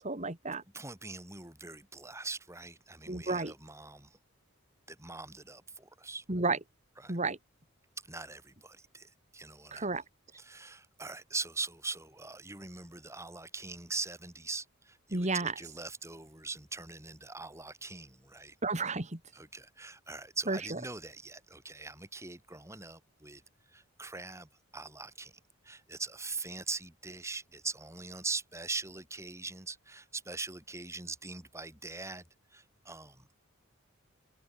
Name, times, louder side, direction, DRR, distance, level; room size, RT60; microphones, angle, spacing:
voice 1, 0.0-0.6 3.1-3.5 6.3-6.6 7.1-7.4 9.7-10.0 15.1-15.5 18.6-19.2 20.5-20.8, right 3 dB, 35° right, 2.3 m, -32 dB
voice 2, 0.7-4.2 4.9-6.2 7.0-7.2 8.1-9.9 10.3-18.6 19.3-23.4 23.7-32.3 32.5-33.3, right 3 dB, 15° right, 5.4 m, -42 dB
head